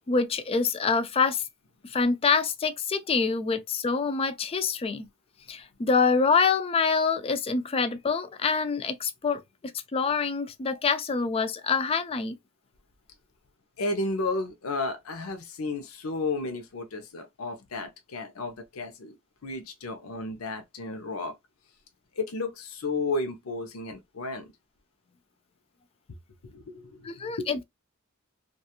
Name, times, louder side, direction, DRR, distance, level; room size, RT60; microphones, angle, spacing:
voice 1, 0.1-1.4 1.8-5.1 5.5-9.4 9.9-12.4 27.0-27.6, left 5 dB, 25° left, 0.3 m, -26 dB
voice 2, 13.8-19.2 19.4-21.3 22.1-24.5 26.4-27.5, left 3 dB, 85° left, 0.6 m, -33 dB
2.4 x 2.3 x 2.8 m
head